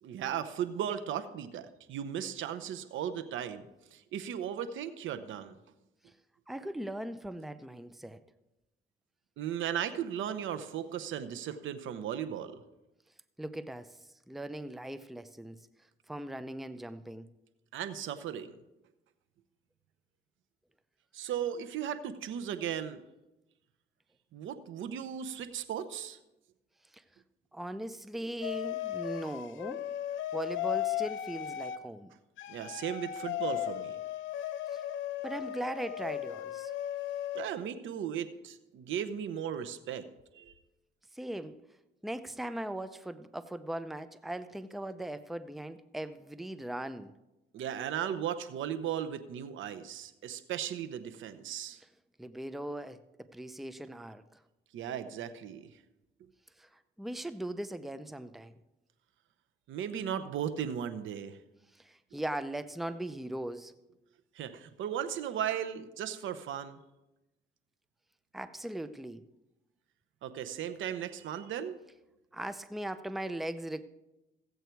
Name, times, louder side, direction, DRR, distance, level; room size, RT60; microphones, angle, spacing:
voice 1, 0.0-3.6 3.9-5.5 9.4-12.6 17.7-18.5 21.1-23.0 24.3-26.2 32.5-34.0 37.3-40.0 40.3-40.5 47.5-51.8 54.7-55.7 59.7-61.4 64.3-66.8 70.2-71.8, right 9 dB, 75° right, 0.9 m, -36 dB
voice 2, 6.5-8.2 13.4-14.0 14.3-15.7 16.1-17.3 26.9-27.0 27.5-29.9 30.3-32.1 34.7-34.8 35.2-36.7 41.1-41.6 42.0-47.1 51.8-51.9 52.2-54.4 56.6-58.6 61.7-63.7 68.3-69.2 72.3-73.8, right 1 dB, ahead, 0.5 m, -39 dB
sound 1, 28.4-31.8 32.4-37.5, left 12 dB, 75° left, 0.8 m, -36 dB
15.5 x 8.2 x 4.6 m
cardioid pair, 90°, 20 cm